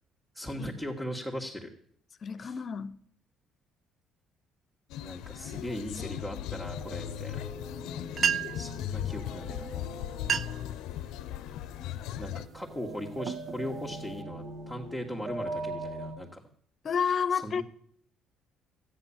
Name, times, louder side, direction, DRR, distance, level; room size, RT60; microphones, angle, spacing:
voice 1, 0.3-1.7 2.4-2.5 5.0-7.4 8.5-9.7 12.2-16.4 17.3-17.6, equal, 5° right, 1.9 m, -38 dB
voice 2, 2.2-3.0 16.8-17.6, left 6 dB, 45° left, 0.9 m, -30 dB
sound 1, 4.9-12.5, left 12 dB, 80° left, 0.6 m, -38 dB
sound 2, 6.6-16.2, right 2 dB, 60° right, 5.1 m, -42 dB
sound 3, 7.9-8.0 8.1-8.7 9.6-9.8 10.1-10.7 11.2-11.6 12.2-12.4 13.0-14.2, right 8 dB, 40° right, 0.6 m, -31 dB
13.0 x 10.0 x 7.3 m
cardioid pair, 90°, 0 cm